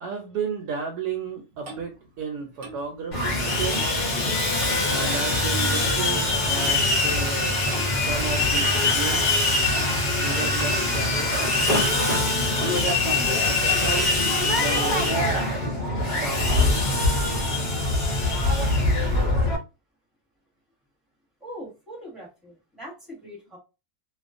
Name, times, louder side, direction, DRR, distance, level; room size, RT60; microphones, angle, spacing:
voice 1, 0.0-4.0 4.9-9.3 10.2-11.6 13.4-15.4 16.0-16.7, right 5 dB, 85° right, 1.1 m, -33 dB
Clock, 1.1-5.0 5.2-5.5 5.7-6.8 7.7-7.9 8.6-8.8 9.7-9.9 10.6-11.4 11.7-11.9 12.6-12.9 13.6-13.9, right 3 dB, 60° right, 0.9 m, -42 dB
Sawing, 3.1-19.6, left 2 dB, 55° left, 0.5 m, -23 dB
voice 2, 21.4-23.6, equal, ahead, 0.9 m, -42 dB
2.3 x 2.3 x 2.5 m
omnidirectional pair, 1.6 m